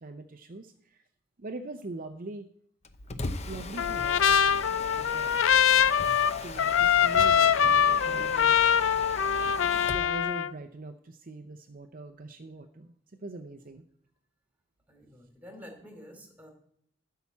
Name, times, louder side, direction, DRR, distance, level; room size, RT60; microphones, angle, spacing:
voice 1, 0.0-1.1 1.4-2.5 3.5-5.4 6.4-8.6 9.6-13.8, right 2 dB, 45° right, 6 dB, 0.6 m, -43 dB
Mechanisms, 2.9-10.1, left 3 dB, 35° left, 0.7 m, -38 dB
Trumpet, 3.8-10.5, left 8 dB, 70° left, 0.4 m, -23 dB
voice 2, 14.9-16.5, equal, 10° right, 3 dB, 2.9 m, -49 dB
12.5 x 5.7 x 8.4 m, 0.67 s
head